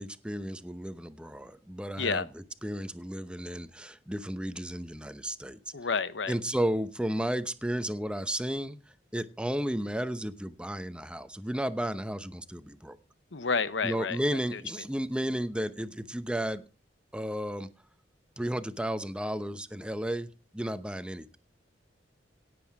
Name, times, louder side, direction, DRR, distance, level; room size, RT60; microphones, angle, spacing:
voice 1, 0.0-2.2 2.6-5.6 6.3-8.8 9.1-13.0 13.8-16.6 17.1-17.7 18.4-20.3 20.5-21.4, right 1 dB, 5° right, 12 dB, 0.8 m, -33 dB
voice 2, 5.7-6.3 13.3-14.2 14.5-14.6, left 5 dB, 90° left, 15 dB, 0.9 m, -30 dB
17.5 x 7.8 x 4.7 m, 0.34 s
head